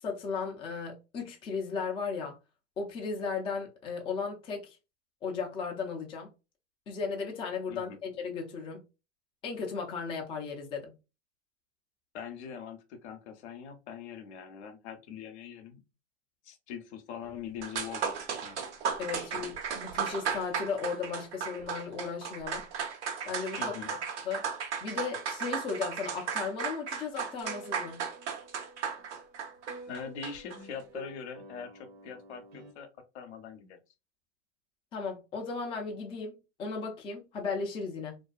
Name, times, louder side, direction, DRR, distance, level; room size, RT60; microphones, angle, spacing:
voice 1, 0.0-2.4 2.8-4.8 5.2-6.3 6.9-8.8 9.4-11.0 19.0-22.7 23.2-24.0 24.3-24.5 24.8-28.0 34.9-38.2, left 5 dB, 15° left, 0.4 m, -36 dB
voice 2, 12.1-15.8 16.4-18.6 19.2-19.4 23.6-23.9 29.9-32.9 33.1-33.8, left 7 dB, 65° left, 0.7 m, -43 dB
sound 1, 17.3-17.4 17.6-30.6, right 7 dB, 70° right, 0.8 m, -35 dB
sound 2, 27.4-32.7, right 2 dB, 25° right, 0.7 m, -49 dB
2.5 x 2.3 x 2.2 m
hypercardioid pair, 110°, 36 cm